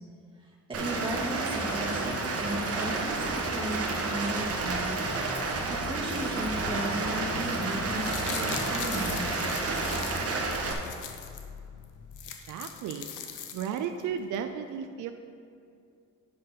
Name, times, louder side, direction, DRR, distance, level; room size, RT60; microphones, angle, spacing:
voice 1, 0.4-4.9 5.8-9.3, right 1 dB, 15° right, -4 dB, 2.1 m, -35 dB
Rain, 0.7-10.7, right 3 dB, 50° right, 1.2 m, -31 dB
sound 1, 3.1-12.2, left 3 dB, 55° left, 1.0 m, -43 dB
sound 2, 7.7-11.4 11.8-11.9 12.1-14.0 14.3-14.4, left 8 dB, 85° left, 0.8 m, -40 dB
voice 2, 12.5-13.1 13.5-15.1, right 8 dB, 80° right, 7 dB, 0.5 m, -34 dB
8.6 x 5.7 x 5.1 m, 2.4 s
cardioid pair, 90°, 30 cm